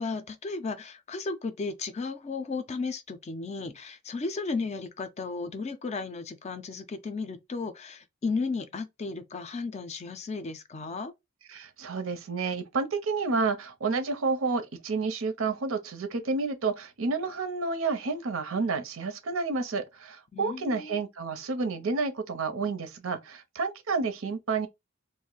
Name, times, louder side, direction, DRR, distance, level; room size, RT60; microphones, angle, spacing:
voice 1, 0.0-11.1 20.3-21.0, left 4 dB, 30° left, 0.4 m, -34 dB
voice 2, 11.5-24.7, right 4 dB, 80° right, 0.6 m, -30 dB
2.5 x 2.0 x 3.8 m
head